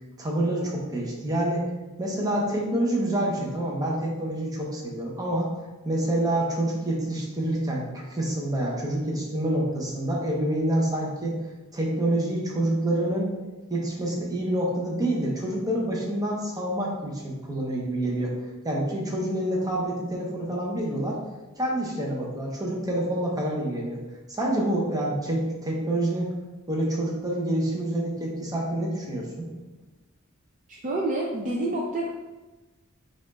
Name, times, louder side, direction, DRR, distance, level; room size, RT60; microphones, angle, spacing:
voice 1, 0.2-1.7 2.0-5.5 5.8-11.4 11.7-13.3 13.7-18.3 18.6-21.2 21.6-24.0 24.3-26.3 26.7-29.5, right 1 dB, 15° right, -3 dB, 0.8 m, -27 dB
voice 2, 30.7-32.1, right 1 dB, 35° right, -3 dB, 0.4 m, -28 dB
4.1 x 2.5 x 4.1 m, 1.2 s
head